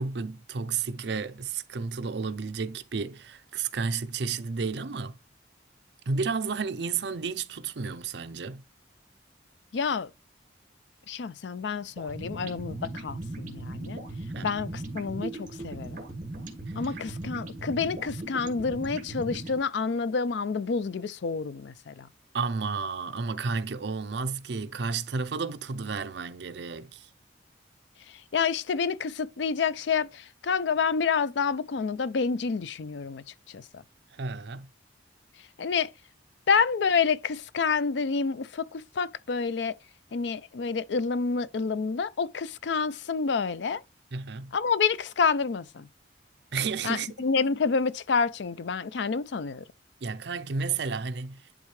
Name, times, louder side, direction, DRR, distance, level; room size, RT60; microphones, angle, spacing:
voice 1, 0.0-5.2 6.1-8.6 14.3-14.5 22.3-27.1 34.1-34.7 44.1-44.5 46.5-47.1 50.0-51.5, right 5 dB, 65° right, 0.6 m, -32 dB
voice 2, 9.7-10.1 11.1-14.0 14.4-16.0 16.8-22.1 28.1-33.8 35.6-35.9 36.5-39.7 40.1-43.8 44.5-45.9 46.8-49.6, left 5 dB, 70° left, 0.5 m, -28 dB
sound 1, 12.0-19.6, right 2 dB, 45° right, 1.8 m, -38 dB
10.5 x 3.6 x 3.2 m
head